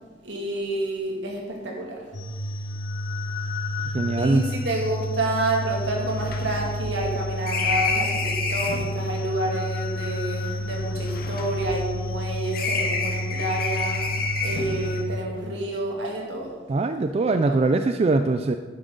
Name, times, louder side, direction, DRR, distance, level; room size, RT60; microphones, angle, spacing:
voice 1, 0.2-2.0 4.2-16.6 17.3-17.7, right 1 dB, 75° right, -1 dB, 2.5 m, -29 dB
sound 1, 2.1-15.0, left 1 dB, 85° left, 1.7 m, -30 dB
voice 2, 3.9-4.4 16.7-18.6, right 3 dB, 35° right, 8 dB, 0.3 m, -22 dB
sound 2, 4.8-4.9 5.2-5.3 5.6-8.9 9.8-12.2 12.5-14.8, left 4 dB, 55° left, 1.6 m, -29 dB
11.0 x 10.0 x 4.0 m, 1.5 s
head